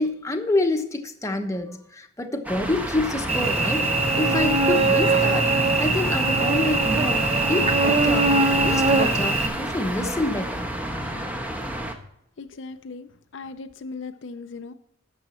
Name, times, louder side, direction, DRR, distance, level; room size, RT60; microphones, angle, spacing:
voice 1, 0.0-3.9 4.2-8.3 8.6-10.6, left 2 dB, 15° left, 4 dB, 1.0 m, -27 dB
sound 1, 2.4-11.9, right 1 dB, 10° right, 1.1 m, -30 dB
Cricket / Buzz, 3.3-9.5, right 3 dB, 35° right, 0.8 m, -21 dB
voice 2, 12.4-14.7, left 4 dB, 70° left, 8 dB, 0.6 m, -38 dB
11.5 x 7.2 x 4.3 m, 0.75 s
head